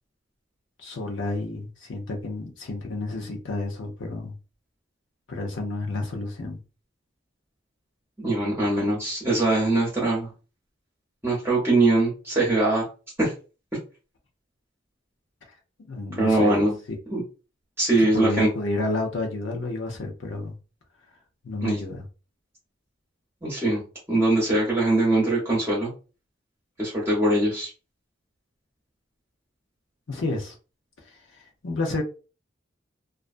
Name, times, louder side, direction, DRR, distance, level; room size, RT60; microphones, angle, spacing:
voice 1, 0.8-4.4 5.3-6.6 15.9-16.7 18.0-20.6 21.4-22.0 30.1-30.5 31.6-32.0, left 2 dB, 85° left, 0.7 m, -30 dB
voice 2, 8.2-10.3 11.2-12.8 13.2-13.3 16.2-16.7 17.1-17.2 17.8-18.5 21.6-21.8 23.4-23.8 24.1-25.9 26.8-27.7, right 2 dB, 15° right, 0.8 m, -22 dB
2.4 x 2.2 x 2.5 m
head